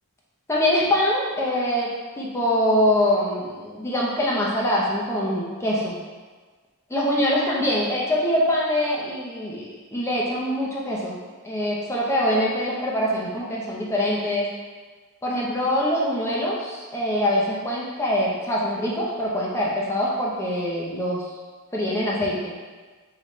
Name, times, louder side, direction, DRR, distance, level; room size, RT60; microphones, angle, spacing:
voice 1, 0.5-1.9 2.2-6.0 6.9-11.2 11.4-14.5 15.2-21.2 21.7-22.6, left 1 dB, 15° left, -5 dB, 0.7 m, -24 dB
4.0 x 3.2 x 3.1 m, 1.4 s
head